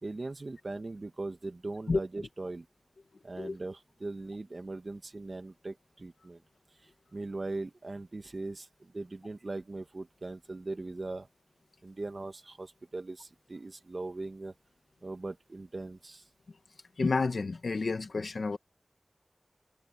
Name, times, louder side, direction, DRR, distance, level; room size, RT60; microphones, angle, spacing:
voice 1, 0.0-2.7 3.2-6.4 6.8-11.3 11.8-14.5 15.0-16.2, right 2 dB, 55° right, 2.3 m, -40 dB
voice 2, 17.0-18.6, left 3 dB, 85° left, 2.2 m, -30 dB
wide cardioid pair, 55°, 0 cm